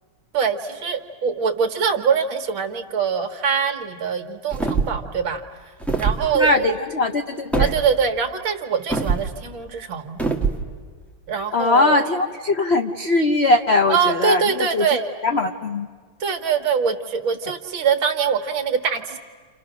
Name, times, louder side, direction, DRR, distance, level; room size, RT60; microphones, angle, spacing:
voice 1, 0.3-5.4 6.0-6.7 7.6-10.2 11.3-12.0 13.9-15.1 16.2-19.2, right 6 dB, 70° right, 6 dB, 2.2 m, -23 dB
sound 1, 4.5-5.1 5.8-6.2 7.5-7.8 8.9-9.3 10.2-10.6, right 4 dB, ahead, 1.4 m, -22 dB
voice 2, 6.3-7.7 11.5-14.9 15.2-15.9, left 2 dB, 65° left, 5 dB, 0.6 m, -20 dB
30.0 x 28.5 x 6.2 m, 1.5 s
omnidirectional pair, 2.3 m